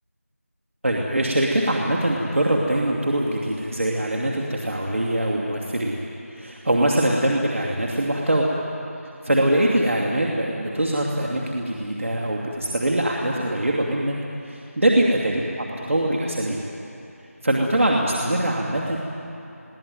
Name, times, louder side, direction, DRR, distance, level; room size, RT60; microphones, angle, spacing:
voice 1, 0.8-6.0 6.3-8.5 9.2-14.1 14.4-16.6 17.4-19.0, right 1 dB, 60° right, -2 dB, 2.7 m, -23 dB
21.5 x 17.0 x 9.4 m, 2.9 s
figure-of-eight pair, 175°, 8 cm